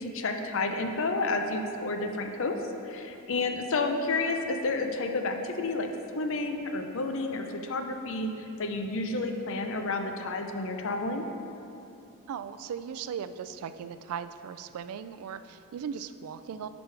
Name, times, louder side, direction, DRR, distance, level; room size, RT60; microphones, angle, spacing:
voice 1, 0.0-2.6 2.8-8.3 8.6-11.2, left 3 dB, 60° left, 5 dB, 0.5 m, -30 dB
voice 2, 3.4-3.7 12.3-16.7, right 7 dB, 75° right, 13 dB, 0.3 m, -38 dB
9.0 x 5.2 x 3.3 m, 2.8 s
head